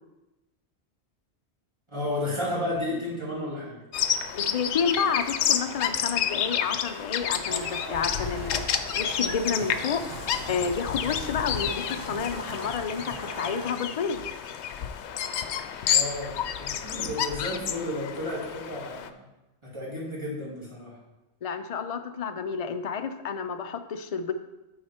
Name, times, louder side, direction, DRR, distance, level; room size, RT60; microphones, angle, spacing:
voice 1, 1.9-3.8 15.9-19.3 19.6-21.0, left 1 dB, 25° right, -6 dB, 2.6 m, -32 dB
Bird vocalization bird call bird song, 3.9-19.1, left 9 dB, 80° left, 0.9 m, -30 dB
voice 2, 4.3-8.6 9.0-10.0 10.5-14.2 21.4-24.3, left 6 dB, 45° left, 8 dB, 0.5 m, -30 dB
sound 1, 7.5-13.8, right 4 dB, 55° right, 0.9 m, -41 dB
9.5 x 4.9 x 4.4 m, 1.0 s
omnidirectional pair, 1.1 m